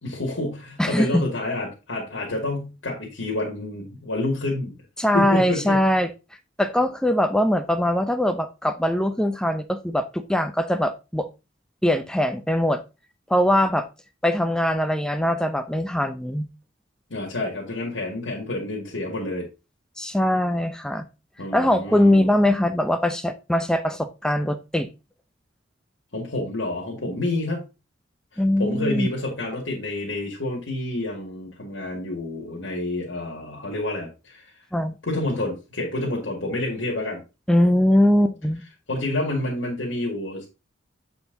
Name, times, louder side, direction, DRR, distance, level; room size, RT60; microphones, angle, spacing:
voice 1, 0.0-4.8 5.1-5.8 17.1-19.5 21.4-22.3 26.1-27.7 28.3-34.5 35.0-37.2 38.9-40.5, left 2 dB, 75° left, -2 dB, 2.1 m, -29 dB
voice 2, 0.8-1.2 5.0-6.1 6.6-11.3 11.8-12.8 13.3-13.9 14.2-16.5 20.0-21.0 21.5-24.9 28.4-29.1 34.7-34.9 37.5-38.6, left 1 dB, 5° left, 10 dB, 0.5 m, -21 dB
7.8 x 4.3 x 3.9 m, 0.28 s
head